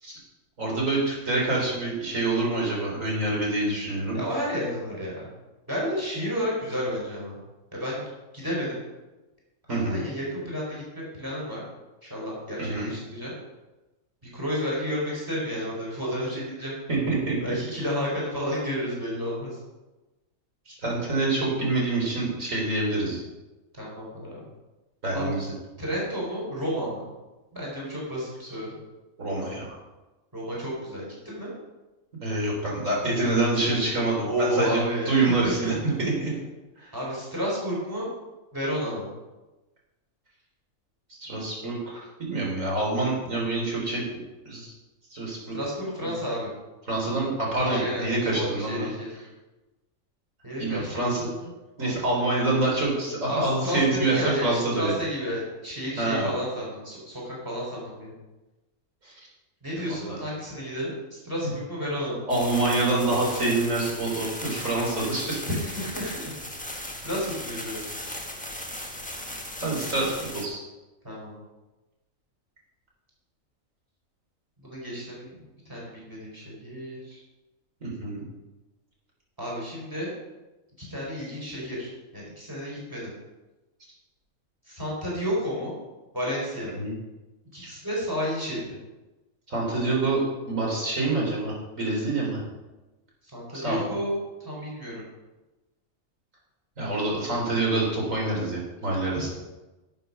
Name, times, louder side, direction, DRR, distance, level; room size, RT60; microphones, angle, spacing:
voice 1, 0.6-4.2 9.7-10.0 12.6-12.9 16.9-17.4 20.7-23.2 25.0-25.5 29.2-29.8 32.2-36.3 36.8-36.9 41.1-44.7 45.1-45.6 46.0-46.1 46.9-48.9 50.6-51.3 51.8-54.9 56.0-56.3 59.0-59.1 59.9-60.2 61.4-61.5 62.3-65.4 69.6-70.6 77.8-78.2 86.8-86.9 87.6-87.7 89.5-90.2 90.5-92.4 93.5-93.9 96.8-99.3, right 2 dB, 65° right, -3 dB, 4.0 m, -26 dB
voice 2, 4.1-5.3 5.7-7.4 7.7-8.0 8.3-8.8 9.9-11.6 12.0-13.3 14.3-16.8 17.4-19.6 23.7-24.4 25.1-25.3 25.8-27.1 27.5-28.7 30.3-31.5 34.2-35.7 36.9-38.1 38.5-39.1 45.5-46.5 47.6-49.1 50.4-51.5 51.8-52.3 53.3-58.1 59.6-62.3 65.5-66.4 67.0-67.9 71.0-71.3 74.6-75.4 75.7-77.2 79.4-80.1 80.8-83.1 84.7-85.7 86.1-86.8 87.5-88.8 93.3-95.0 99.1-99.3, equal, 15° right, -5 dB, 4.3 m, -31 dB
sound 1, 62.3-70.5, left 1 dB, 5° left, 1.3 m, -37 dB
11.5 x 7.5 x 5.5 m, 1.1 s
omnidirectional pair, 1.4 m